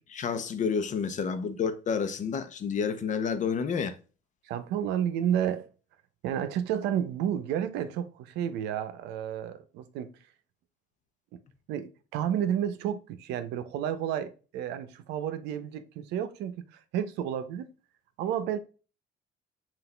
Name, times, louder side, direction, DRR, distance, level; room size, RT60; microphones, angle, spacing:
voice 1, 0.1-3.9, left 6 dB, 45° left, 0.8 m, -30 dB
voice 2, 4.4-5.7 6.2-10.2 11.3-11.4 11.7-17.7 18.2-18.6, right 9 dB, 90° right, 0.7 m, -31 dB
5.8 x 2.6 x 3.2 m
cardioid pair, 110°, 17 cm